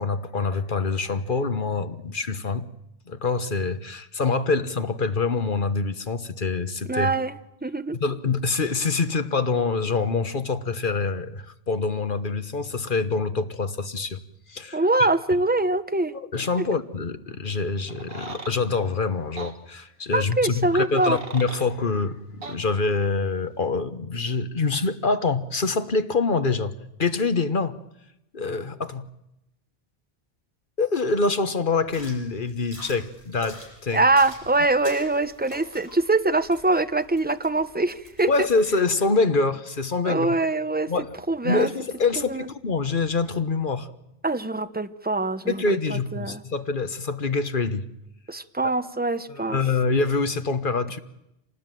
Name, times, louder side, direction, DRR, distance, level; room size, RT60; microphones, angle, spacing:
voice 1, 0.0-2.7 3.1-7.1 8.0-14.2 14.5-14.8 16.1-26.7 27.0-27.8 28.3-29.1 30.8-34.0 38.3-40.3 40.9-41.1 41.4-43.9 45.5-47.8 48.6-48.7 49.3-51.0, left 4 dB, 55° left, 11 dB, 1.4 m, -25 dB
voice 2, 6.9-8.0 14.7-16.1 20.1-21.2 33.9-38.3 40.0-40.9 41.3-41.7 42.3-42.5 44.2-45.6 45.9-46.4 48.3-49.6, right 2 dB, 10° right, 11 dB, 0.9 m, -23 dB
sound 1, 17.9-18.6 19.4-19.5 20.7-21.7 22.4-22.6, right 3 dB, 65° right, 2.1 m, -38 dB
sound 2, 31.8-38.8, equal, 30° left, 7.2 m, -43 dB
27.0 x 19.0 x 9.2 m, 0.87 s
omnidirectional pair, 1.0 m